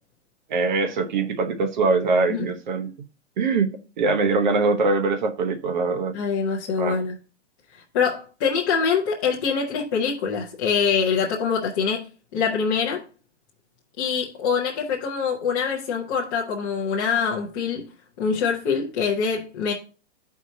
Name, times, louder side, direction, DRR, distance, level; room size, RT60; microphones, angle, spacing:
voice 1, 0.5-2.9 3.4-6.2 6.8-7.0, right 3 dB, 45° right, 1.0 m, -23 dB
voice 2, 6.1-7.1 7.9-12.1 12.3-13.0 14.0-17.8 18.2-19.7, left 6 dB, 15° left, 0.7 m, -24 dB
13.0 x 4.7 x 2.7 m
hypercardioid pair, 175°, 34 cm